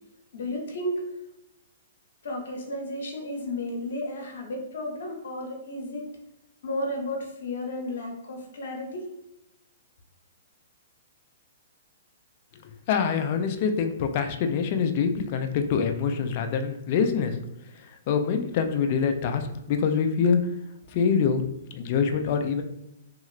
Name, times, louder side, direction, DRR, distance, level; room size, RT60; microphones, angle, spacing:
voice 1, 0.3-1.1 2.2-6.1 6.6-9.1, left 1 dB, 75° left, 2 dB, 0.9 m, -33 dB
voice 2, 12.6-17.4 17.8-20.4 20.9-21.4 21.7-22.6, left 6 dB, 45° left, 6 dB, 0.4 m, -25 dB
2.9 x 2.8 x 2.4 m, 0.85 s
hypercardioid pair, 140°, 0 cm